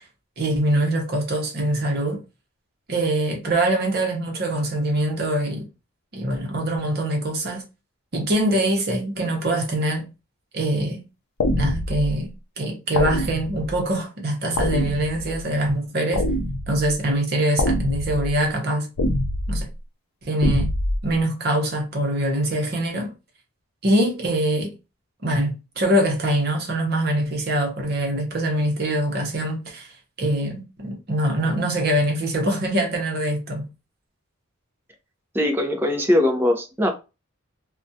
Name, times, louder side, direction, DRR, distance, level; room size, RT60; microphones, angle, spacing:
voice 1, 0.4-2.2 2.9-5.7 6.1-7.6 8.1-10.1 10.5-11.0 11.6-12.3 12.6-16.3 16.7-18.9 19.5-19.7 20.2-20.7 21.0-23.1 23.8-24.7 25.2-29.9 30.2-33.7, right 1 dB, 45° right, 0.7 m, -23 dB
sound 1, 11.4-12.1 13.0-13.8 14.6-15.4 16.1-16.9 17.6-18.3 19.0-19.6 20.4-21.0, left 1 dB, 90° left, 0.5 m, -24 dB
voice 2, 35.3-36.9, left 1 dB, 10° right, 0.5 m, -21 dB
2.4 x 2.1 x 2.6 m
head